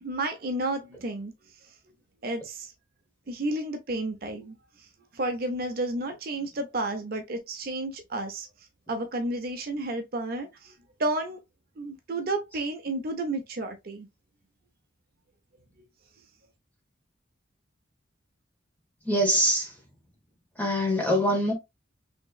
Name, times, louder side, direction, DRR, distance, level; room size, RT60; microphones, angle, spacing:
voice 1, 0.0-1.3 2.2-2.7 3.3-4.5 5.1-8.5 8.9-10.7 11.0-11.4 11.8-14.1, right 2 dB, 50° right, 0.6 m, -31 dB
voice 2, 19.1-19.7 20.6-21.5, equal, 10° left, 1.1 m, -23 dB
3.5 x 3.0 x 2.3 m
head